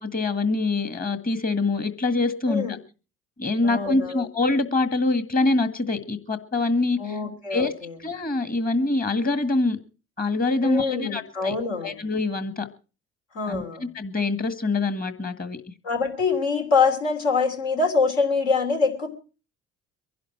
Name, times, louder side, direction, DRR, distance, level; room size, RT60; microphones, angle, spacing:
voice 1, 0.0-2.8 3.4-7.2 7.5-7.7 8.0-9.8 10.2-11.6 11.8-12.7 13.5-15.6, left 2 dB, 25° left, 11 dB, 1.8 m, -25 dB
voice 2, 3.6-4.2 7.0-7.9 10.6-12.0 13.3-13.8 15.8-19.1, left 4 dB, 70° left, 2 dB, 3.1 m, -24 dB
23.5 x 11.0 x 4.5 m, 0.35 s
figure-of-eight pair, 50°, 35 cm